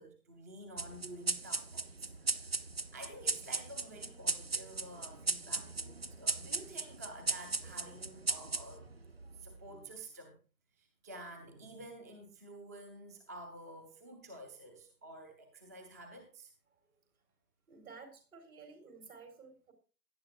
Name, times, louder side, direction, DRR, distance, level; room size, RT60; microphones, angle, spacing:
voice 1, 0.0-2.6 2.9-9.0 9.3-10.4 10.8-16.5, right 1 dB, 10° right, 5 dB, 0.7 m, -50 dB
sound 1, 0.8-9.7, right 3 dB, 40° right, 0.4 m, -37 dB
voice 2, 17.7-19.7, right 4 dB, 60° right, 5 dB, 4.1 m, -53 dB
17.0 x 10.0 x 2.4 m, 0.34 s
figure-of-eight pair, 145°, 49 cm